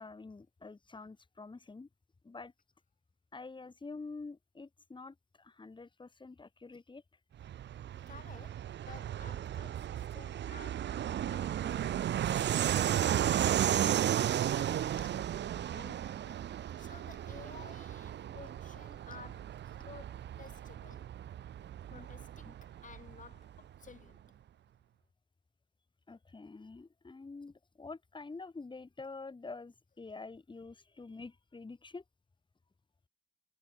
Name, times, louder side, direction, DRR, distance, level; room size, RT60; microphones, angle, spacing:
voice 1, 0.0-1.9 2.2-2.5 3.3-7.0 21.9-22.1 22.5-22.6 26.1-32.0, left 3 dB, 25° left, 4.6 m, -47 dB
Fixed-wing aircraft airplane, 7.4-23.6, right 11 dB, 60° right, 1.2 m, -34 dB
voice 2, 8.1-19.6 19.8-21.1 21.9-24.4, left 6 dB, 40° left, 7.8 m, -55 dB
cardioid pair, 90°, 20 cm